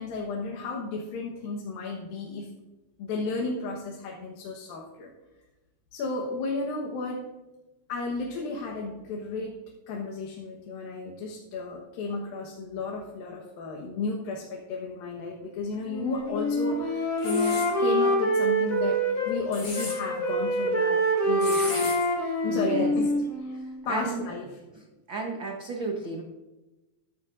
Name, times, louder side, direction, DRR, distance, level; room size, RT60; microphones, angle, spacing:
voice 1, 0.0-2.5 3.0-5.1 5.9-7.2 7.9-9.6 9.9-23.1 23.4-23.6 23.9-24.6, left 3 dB, 80° left, 0 dB, 3.1 m, -33 dB
Wind instrument woodwind instrument, 15.9-19.4 19.7-23.8, equal, 35° left, 1.6 m, -26 dB
sound 1, 17.2-17.7 19.3-20.0 21.4-22.0, left 3 dB, 50° left, 4.5 m, -35 dB
voice 2, 22.5-22.9 23.9-24.2 25.1-26.2, right 4 dB, 90° right, 1 dB, 1.0 m, -31 dB
14.0 x 12.5 x 2.6 m, 1.0 s
omnidirectional pair, 4.1 m